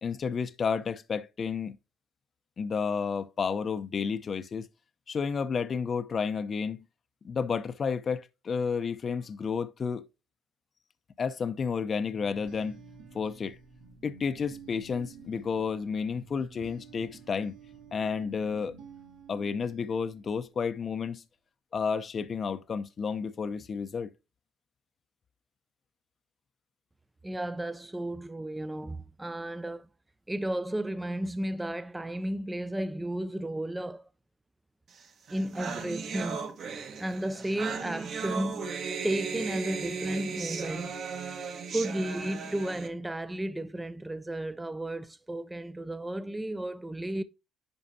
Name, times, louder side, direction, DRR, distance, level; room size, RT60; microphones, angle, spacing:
voice 1, 0.0-1.8 2.6-4.7 5.1-6.8 7.2-10.1 11.2-12.8 13.1-13.6 14.0-17.5 17.9-18.8 19.3-21.2 21.7-24.1, left 6 dB, 40° left, 0.6 m, -31 dB
sound 1, 12.0-20.7, right 5 dB, 80° right, 2.3 m, -51 dB
voice 2, 27.2-29.9 30.3-34.1 35.3-36.5 37.0-38.7 39.0-41.0 41.7-47.2, right 1 dB, 10° right, 0.4 m, -33 dB
sound 2, 35.0-35.1 35.3-42.9, right 5 dB, 55° right, 1.4 m, -36 dB
10.5 x 4.5 x 2.7 m
cardioid pair, 105°, 0 cm